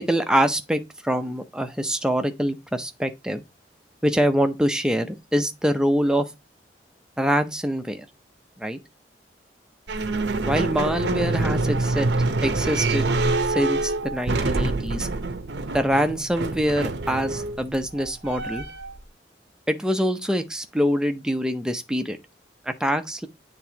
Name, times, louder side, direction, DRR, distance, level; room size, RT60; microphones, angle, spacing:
voice 1, 0.0-3.4 4.0-6.3 7.2-8.1 8.6-8.8 10.4-13.1 13.5-15.1 15.7-18.6 19.7-22.2 22.7-23.3, equal, 5° right, 0.6 m, -24 dB
sound 1, 9.9-19.0, right 2 dB, 80° right, 0.7 m, -26 dB
9.1 x 3.6 x 2.8 m
head